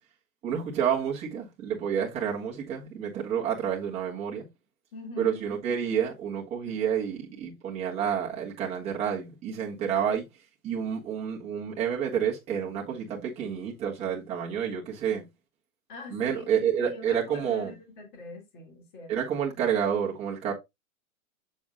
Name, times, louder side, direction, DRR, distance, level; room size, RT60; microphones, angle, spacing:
voice 1, 0.4-4.4 5.2-10.2 10.6-15.2 16.1-17.7 19.1-20.5, right 8 dB, 15° right, 1.5 m, -29 dB
voice 2, 4.9-5.4 6.7-6.8 15.9-19.1, left 2 dB, 35° left, 2.7 m, -43 dB
7.1 x 7.1 x 2.5 m
hypercardioid pair, 165°, 43 cm